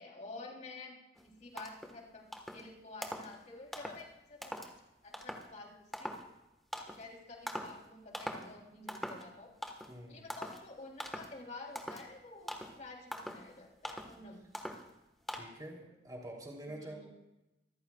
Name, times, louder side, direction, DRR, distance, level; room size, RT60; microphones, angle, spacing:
voice 1, 0.0-2.2 2.5-4.5 5.0-6.2 6.9-9.5 10.1-14.5 16.6-17.1, left 3 dB, 40° left, -1 dB, 3.4 m, -50 dB
sound 1, 1.2-1.3 1.6-2.0 2.3-2.7 3.0-3.3 3.7-4.0 4.4-4.7 5.1-5.5 5.9-6.3 6.7-7.0 7.5-7.8 8.1-8.5 8.9-9.3 9.6-10.0 10.3-10.6 11.0-11.3 11.7-12.1 12.5-12.8 13.1-13.5 13.8-14.2 14.5-14.9 15.3-15.4, equal, ahead, 1.4 m, -42 dB
voice 2, 9.9-10.2 15.3-17.1, right 1 dB, 20° right, -1 dB, 3.3 m, -46 dB
25.5 x 14.5 x 2.4 m, 0.95 s
head